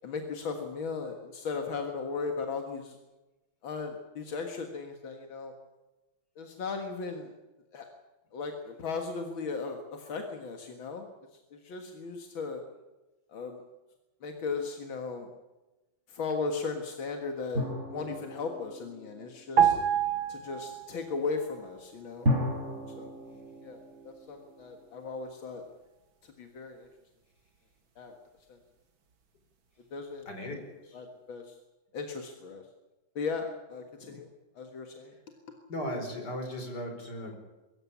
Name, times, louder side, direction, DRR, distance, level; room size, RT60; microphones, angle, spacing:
voice 1, 0.0-3.0 3.6-5.5 6.4-7.3 7.7-7.9 8.3-12.6 13.3-13.6 14.2-15.3 16.1-19.8 20.3-22.3 23.0-23.1 23.6-25.6 26.2-26.9 28.0-28.2 28.5-28.6 29.9-30.6 30.9-31.6 31.9-32.6 33.2-34.3 34.6-35.1, left 4 dB, 85° left, 4 dB, 2.5 m, -37 dB
sound 1, 17.5-19.9 22.3-25.2, equal, 35° right, 5.2 m, -34 dB
sound 2, 19.6-21.2 21.5-21.7, right 8 dB, 85° right, 2.9 m, -26 dB
voice 2, 30.3-31.0 35.7-37.4, left 1 dB, 55° left, 4 dB, 5.2 m, -37 dB
22.5 x 15.0 x 9.9 m, 1.1 s
omnidirectional pair, 2.1 m